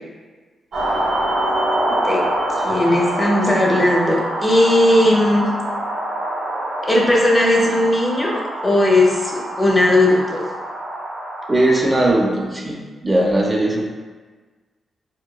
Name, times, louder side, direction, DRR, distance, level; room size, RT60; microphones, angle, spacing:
sound 1, 0.7-11.8, right 1 dB, 75° right, 1.2 m, -25 dB
voice 1, 1.9-2.2 2.6-5.5 6.9-10.4, left 1 dB, 20° left, -2 dB, 0.7 m, -17 dB
voice 2, 11.5-12.8 13.0-13.8, right 1 dB, 20° right, -2 dB, 0.5 m, -18 dB
3.6 x 2.9 x 2.3 m, 1.4 s
cardioid pair, 75°, 0 cm